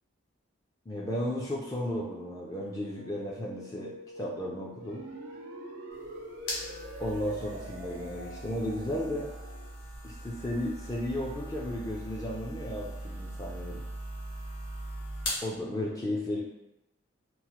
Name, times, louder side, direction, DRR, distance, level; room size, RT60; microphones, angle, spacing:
voice 1, 0.9-5.1 7.0-9.3 10.0-13.8 15.4-16.4, left 1 dB, 20° left, -5 dB, 0.3 m, -34 dB
sound 1, 2.8-9.7, equal, 55° left, 1.4 m, -49 dB
sound 2, 4.8-9.6, right 1 dB, 65° right, 0.5 m, -46 dB
sound 3, 5.9-15.5, equal, 75° left, 0.8 m, -40 dB
3.0 x 2.0 x 2.9 m, 0.90 s
head